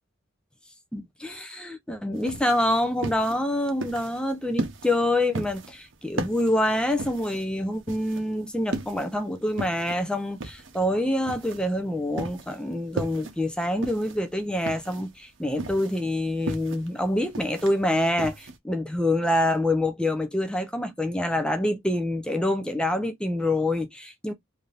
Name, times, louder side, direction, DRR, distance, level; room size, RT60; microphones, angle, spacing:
voice 1, 0.9-24.3, left 1 dB, 5° left, 0.5 m, -26 dB
sound 1, 2.2-18.6, right 2 dB, 60° right, 0.8 m, -36 dB
3.4 x 2.7 x 2.5 m
head